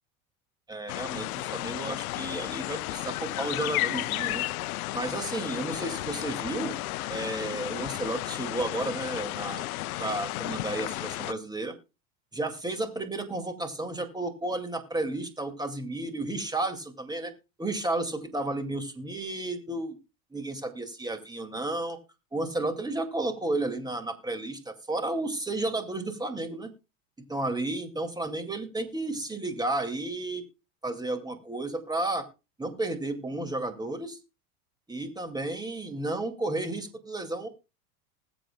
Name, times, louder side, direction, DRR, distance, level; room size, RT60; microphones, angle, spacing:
voice 1, 0.7-4.5 4.9-6.8 7.1-9.7 10.0-11.7 12.3-17.3 17.6-20.0 20.3-22.0 22.3-26.7 27.2-30.4 30.8-32.3 32.6-34.2 34.9-37.5, right 2 dB, 10° right, 7 dB, 2.3 m, -32 dB
sound 1, 0.9-11.3, left 18 dB, 85° left, 0.5 m, -33 dB
20.0 x 8.0 x 2.3 m, 0.28 s
hypercardioid pair, 105°, 42 cm